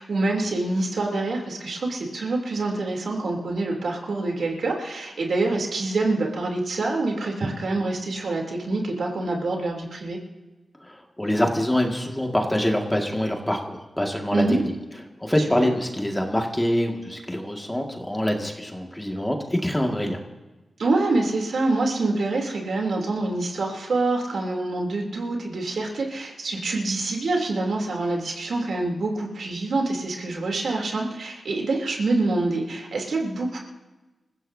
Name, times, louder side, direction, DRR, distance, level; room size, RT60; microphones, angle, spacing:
voice 1, 0.0-10.2 14.3-14.6 20.8-33.6, right 2 dB, 75° right, 0 dB, 3.2 m, -26 dB
voice 2, 10.8-14.7 15.2-20.2, left 1 dB, 10° left, 2 dB, 2.0 m, -25 dB
26.5 x 15.5 x 2.8 m, 1.1 s
wide cardioid pair, 80°, 0 cm